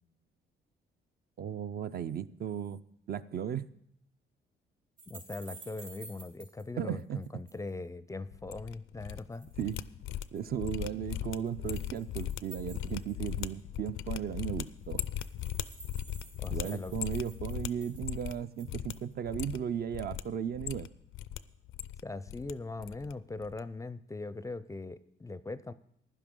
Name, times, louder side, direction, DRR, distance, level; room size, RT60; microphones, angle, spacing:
voice 1, 1.4-2.8 3.1-3.7 6.8-7.2 9.6-9.8 10.3-15.0 16.5-20.9, right 9 dB, 50° right, 12 dB, 0.5 m, -36 dB
sound 1, 5.0-6.6 7.0-7.7 9.1-9.8 10.2-10.5 11.1-13.6 14.0-14.1 14.3-14.4 14.5-19.1, right 5 dB, 70° right, 3.8 m, -52 dB
voice 2, 5.1-9.5 16.4-17.0 22.0-25.7, left 3 dB, 15° left, 15 dB, 0.4 m, -40 dB
sound 2, 8.3-9.2 9.5-18.4 18.7-18.9 19.2-20.2 20.5-21.4 21.6-22.5 22.8-23.1 23.4-23.6, left 12 dB, 80° left, 0.5 m, -38 dB
15.5 x 11.0 x 3.7 m, 0.72 s
cardioid pair, 90°, 20 cm